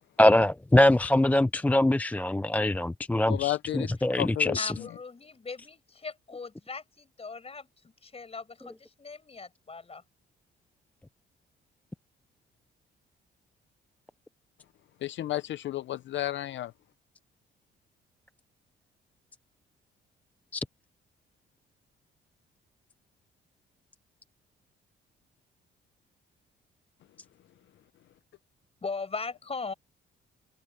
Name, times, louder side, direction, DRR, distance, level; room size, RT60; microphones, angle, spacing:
voice 1, 0.2-4.7 20.5-20.6, left 1 dB, 10° left, 0.4 m, -23 dB
voice 2, 3.3-3.9 4.2-4.9 15.0-16.7, left 14 dB, 70° left, 0.7 m, -32 dB
voice 3, 4.6-7.7 8.0-10.0 28.8-29.7, left 4 dB, 30° left, 5.7 m, -39 dB
cardioid pair, 90°, 20 cm